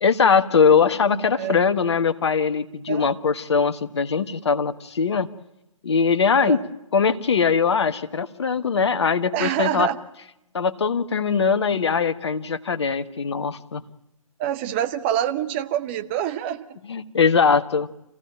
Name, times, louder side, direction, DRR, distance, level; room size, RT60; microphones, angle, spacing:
voice 1, 0.0-5.3 5.8-6.6 6.9-9.9 10.5-13.8 16.9-17.9, left 5 dB, 50° left, 10 dB, 1.4 m, -21 dB
voice 2, 1.1-1.6 2.9-3.1 6.4-6.6 9.3-10.0 14.4-16.8, right 11 dB, 20° right, 9 dB, 1.0 m, -26 dB
28.5 x 16.5 x 9.0 m, 0.87 s
figure-of-eight pair, 140°, 18 cm